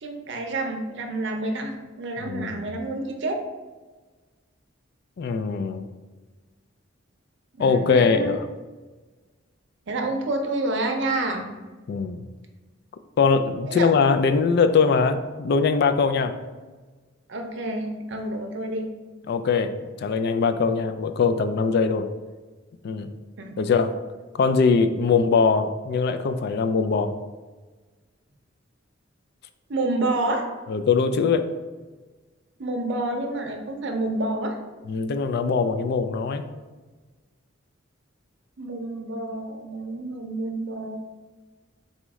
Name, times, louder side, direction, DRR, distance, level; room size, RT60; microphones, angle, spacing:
voice 1, 0.0-3.4 7.5-8.4 9.9-11.6 13.7-13.9 17.3-18.9 23.4-23.6 29.7-30.5 32.6-34.6 38.6-41.0, right 2 dB, 65° right, 4 dB, 0.6 m, -28 dB
voice 2, 2.2-2.6 5.2-5.9 7.6-8.5 11.9-12.2 13.2-16.4 19.3-22.1 22.8-23.1 23.6-23.9 24.4-27.2 30.7-31.5 34.9-36.5, left 5 dB, 55° left, 9 dB, 0.3 m, -22 dB
4.1 x 3.1 x 3.5 m, 1.3 s
head